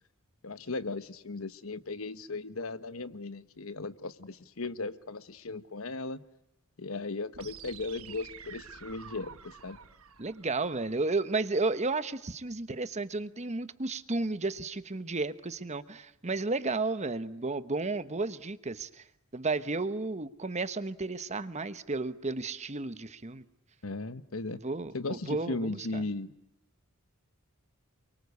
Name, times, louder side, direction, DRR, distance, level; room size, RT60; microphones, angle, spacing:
voice 1, 0.4-6.2 6.8-9.8 23.8-24.6 24.9-26.3, left 3 dB, 75° left, 13 dB, 1.2 m, -37 dB
sound 1, 7.3-11.3, right 7 dB, 85° right, 1.5 m, -49 dB
voice 2, 10.2-18.9 19.3-23.4 24.6-26.0, right 3 dB, 30° right, 13 dB, 1.1 m, -33 dB
28.5 x 23.5 x 8.3 m, 0.80 s
head